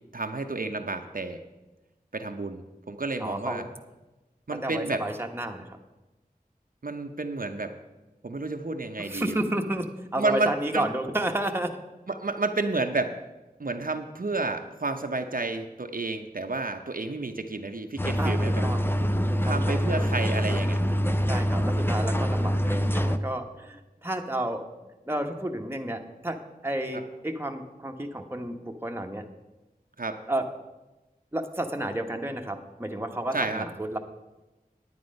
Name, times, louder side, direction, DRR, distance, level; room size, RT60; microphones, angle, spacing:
voice 1, 0.1-1.4 2.1-3.6 4.5-5.0 6.8-7.7 8.2-9.4 10.2-10.9 12.1-13.1 13.6-18.6 19.4-20.8 30.0-30.2 33.3-33.6, right 3 dB, 65° right, 5 dB, 0.8 m, -30 dB
voice 2, 3.2-3.6 4.6-5.8 9.0-11.7 18.2-18.8 19.3-19.7 21.3-24.6 25.1-26.4 26.6-29.2 30.3-30.4 31.3-34.0, right 1 dB, 15° right, 4 dB, 1.0 m, -31 dB
sound 1, 18.0-23.2, equal, 15° left, 0.6 m, -25 dB
9.6 x 9.4 x 5.3 m, 1.1 s
wide cardioid pair, 45°, 16 cm